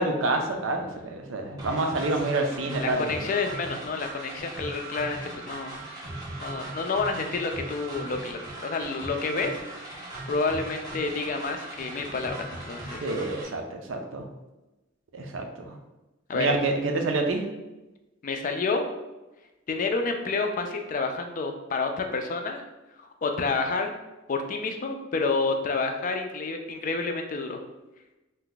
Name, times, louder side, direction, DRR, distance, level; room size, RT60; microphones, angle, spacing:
voice 1, 0.0-3.2 13.0-14.2 15.1-15.7 16.3-17.4, right 2 dB, 80° right, 3 dB, 0.5 m, -27 dB
sound 1, 1.6-13.4, right 2 dB, 20° right, 0.7 m, -39 dB
voice 2, 2.8-5.2 5.5-6.1 6.4-9.6 10.3-13.1 16.3-16.6 18.2-18.8 19.7-22.6 23.0-23.9 24.3-27.6, left 4 dB, 40° left, 5 dB, 0.3 m, -29 dB
2.7 x 2.3 x 3.8 m, 1.0 s
head